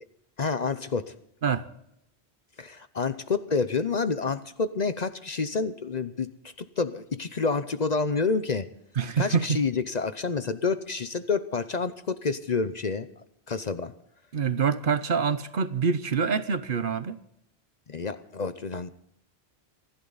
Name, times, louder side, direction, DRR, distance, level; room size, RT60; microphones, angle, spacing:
voice 1, 0.4-1.1 2.6-6.3 6.6-8.7 9.2-13.1 13.5-13.9 17.9-18.9, left 4 dB, 45° left, 0.8 m, -28 dB
voice 2, 9.0-9.6 14.3-17.2, right 6 dB, 55° right, 1.0 m, -26 dB
26.5 x 12.0 x 4.0 m
omnidirectional pair, 1.1 m